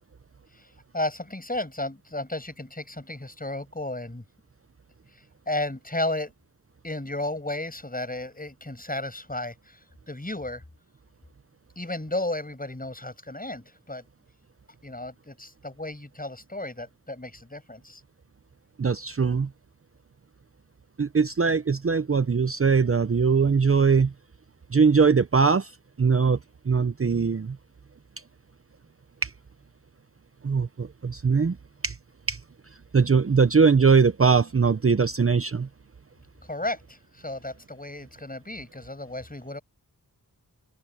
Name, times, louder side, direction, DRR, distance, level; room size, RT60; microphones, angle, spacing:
voice 1, 0.9-4.2 5.5-6.3 6.8-9.8 10.1-10.6 11.8-14.0 14.8-18.0 36.5-39.6, left 2 dB, 25° left, 6.6 m, -33 dB
voice 2, 18.8-19.5 21.0-24.1 24.7-25.7 26.0-26.4 26.7-27.6 29.2-29.3 30.4-31.6 31.8-32.0 32.3-32.4 32.9-35.7, right 5 dB, 35° right, 0.7 m, -21 dB
open air
wide cardioid pair, 55°, 37 cm